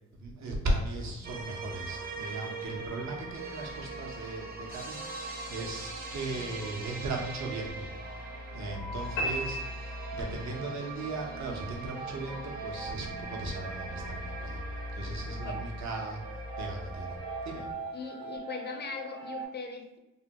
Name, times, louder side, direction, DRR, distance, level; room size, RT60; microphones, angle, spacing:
voice 1, 0.2-7.9 8.5-14.6 14.9-16.2 16.6-17.1 17.5-17.7, right 2 dB, 60° right, 1 dB, 0.8 m, -37 dB
sound 1, 1.2-17.6, right 2 dB, 30° right, 0.7 m, -41 dB
sound 2, 6.4-8.0 8.2-19.4, right 3 dB, 80° right, 1.0 m, -44 dB
sound 3, 9.2-10.7, equal, 75° left, 0.9 m, -35 dB
voice 2, 15.3-15.6 17.9-20.0, left 5 dB, 30° left, 4 dB, 0.6 m, -40 dB
3.3 x 2.2 x 2.8 m, 0.96 s
cardioid pair, 65°, 32 cm